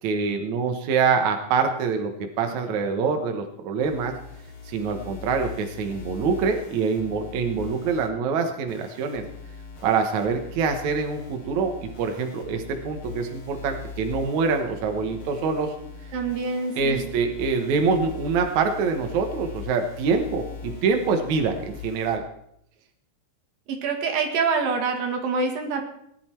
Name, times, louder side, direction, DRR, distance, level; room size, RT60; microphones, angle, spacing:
voice 1, 0.0-4.2 4.7-9.2 9.8-15.7 16.8-22.2, right 5 dB, 65° right, 4 dB, 2.4 m, -25 dB
sound 1, 3.8-8.1 8.7-22.2, left 5 dB, 30° left, 2.2 m, -41 dB
voice 2, 16.1-17.0 23.7-25.8, right 4 dB, 80° right, 3 dB, 3.6 m, -26 dB
18.5 x 11.0 x 4.5 m, 0.73 s
omnidirectional pair, 4.0 m